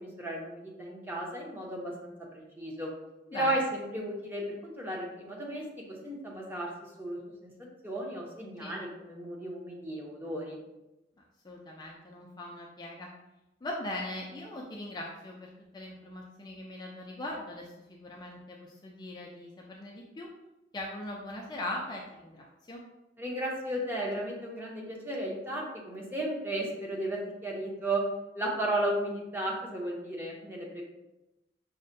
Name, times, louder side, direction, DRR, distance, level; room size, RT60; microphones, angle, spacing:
voice 1, 0.0-2.9 3.3-5.6 5.9-6.7 7.0-7.5 7.8-10.6 23.2-28.0 28.3-30.8, right 1 dB, 10° right, -2 dB, 0.7 m, -34 dB
voice 2, 3.3-3.7 8.6-8.7 11.4-13.1 13.6-20.3 20.7-22.8, left 1 dB, 25° left, -1 dB, 0.4 m, -40 dB
5.4 x 2.1 x 2.6 m, 0.97 s
head